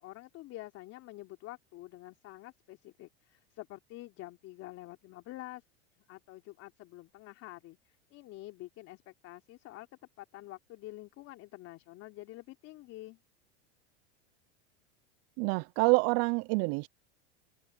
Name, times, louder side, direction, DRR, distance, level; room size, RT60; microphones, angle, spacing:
voice 1, 0.0-5.6 6.1-9.9 10.2-13.2, left 17 dB, 50° left, 3.2 m, -48 dB
voice 2, 15.4-16.9, right 31 dB, 50° right, 0.4 m, -27 dB
supercardioid pair, 110°, 32 cm